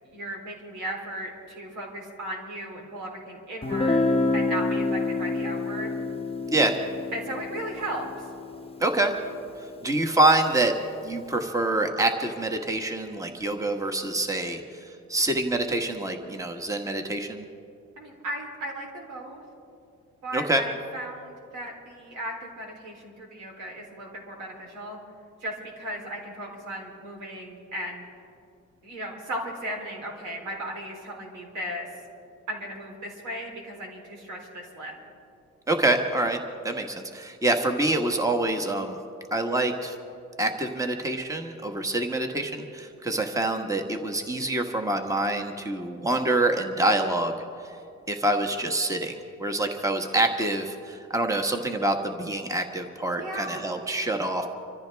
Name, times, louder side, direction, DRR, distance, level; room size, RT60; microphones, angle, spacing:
voice 1, 0.0-4.0 4.3-5.9 7.1-8.3 18.0-19.4 20.2-25.0 25.4-28.1 28.8-31.9 32.5-34.9 53.2-53.6, right 1 dB, 85° right, 0 dB, 3.6 m, -36 dB
Guitar, 3.6-9.4, left 3 dB, 20° left, 1.0 m, -28 dB
voice 2, 8.8-9.1 9.8-10.8 11.0-17.4 20.3-20.6 35.7-36.4 36.6-39.0 39.3-39.9 40.4-47.4 48.1-54.5, right 2 dB, 10° right, 5 dB, 1.4 m, -26 dB
26.0 x 14.5 x 3.5 m, 2.4 s
cardioid pair, 90°, 30 cm